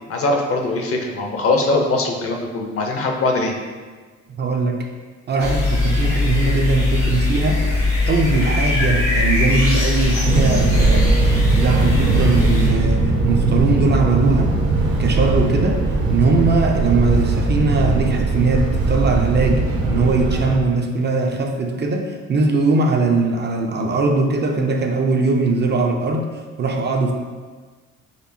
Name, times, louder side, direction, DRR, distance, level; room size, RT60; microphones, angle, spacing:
voice 1, 0.1-3.5, left 2 dB, 50° left, 2 dB, 0.6 m, -21 dB
voice 2, 4.4-4.8 5.3-7.6 8.1-11.3 11.5-14.6 14.9-15.8 16.1-26.3 26.6-27.1, right 3 dB, 35° right, 2 dB, 0.4 m, -20 dB
sound 1, 5.4-12.7, left 3 dB, 80° left, 1.4 m, -20 dB
Fixed-wing aircraft airplane, 10.2-20.6, right 3 dB, 65° right, 0.7 m, -19 dB
4.4 x 2.4 x 2.6 m, 1.4 s
cardioid pair, 90°, 30 cm